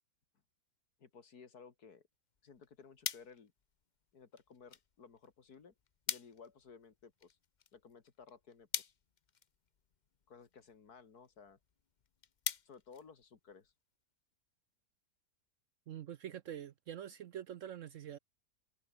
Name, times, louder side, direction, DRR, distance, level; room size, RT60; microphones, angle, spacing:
voice 1, 1.0-2.1 2.4-3.5 4.1-5.7 6.1-7.4 7.7-8.9 10.3-11.6 12.7-13.7, left 5 dB, 70° left, 2.5 m, -57 dB
sound 1, 2.3-13.8, left 6 dB, 40° left, 0.7 m, -47 dB
voice 2, 15.9-18.2, right 10 dB, 65° right, 0.8 m, -45 dB
omnidirectional pair, 1.7 m